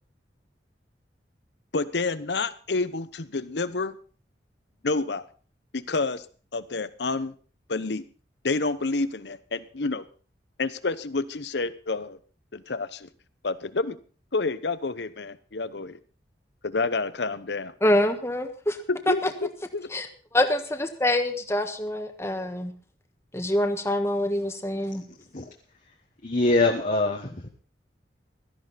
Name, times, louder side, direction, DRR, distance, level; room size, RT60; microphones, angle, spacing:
voice 1, 1.7-4.0 4.8-5.2 5.7-6.2 6.5-7.3 7.7-8.0 8.4-10.0 10.6-12.2 12.5-13.1 13.4-14.0 14.3-16.0 16.6-17.7 18.9-19.9, left 3 dB, 70° left, 15 dB, 0.9 m, -29 dB
voice 2, 17.8-18.8 19.1-19.2 19.9-20.1 20.3-22.7 23.3-25.0, left 1 dB, 15° left, 6 dB, 1.5 m, -25 dB
voice 3, 25.1-25.4 26.2-27.5, left 2 dB, 45° left, 2 dB, 1.4 m, -24 dB
16.5 x 13.0 x 4.2 m, 0.40 s
head